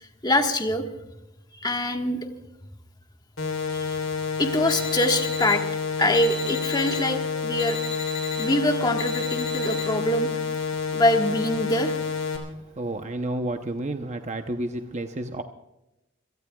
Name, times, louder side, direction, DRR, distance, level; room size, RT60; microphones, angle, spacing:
voice 1, 0.2-0.8 1.6-2.2 3.7-4.0 4.4-5.6 6.0-7.8 8.4-10.3 10.9-11.9, left 1 dB, 20° left, 4 dB, 1.5 m, -24 dB
sound 1, 3.4-12.4, left 5 dB, 75° left, 3.4 m, -29 dB
sound 2, 4.7-5.5 6.1-7.0 7.6-8.4 9.0-9.8, left 5 dB, 40° left, 4.6 m, -35 dB
voice 2, 12.8-15.4, right 1 dB, 35° right, 6 dB, 0.8 m, -30 dB
27.0 x 17.5 x 2.3 m, 0.93 s
head